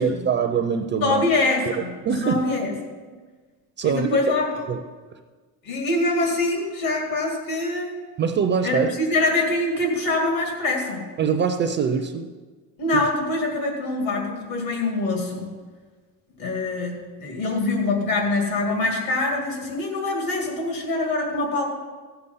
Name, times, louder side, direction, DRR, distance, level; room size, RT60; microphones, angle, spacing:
voice 1, 0.0-1.2 2.0-2.5 3.8-4.3 4.7-4.8 8.2-8.9 11.2-12.3, right 6 dB, 30° right, 7 dB, 0.4 m, -23 dB
voice 2, 1.0-1.9 2.2-2.7 3.8-4.5 5.6-8.0 8.6-11.0 12.8-15.5 16.4-21.7, left 2 dB, 65° left, 0 dB, 2.5 m, -24 dB
15.5 x 6.8 x 5.5 m, 1.4 s
cardioid pair, 160°, 38 cm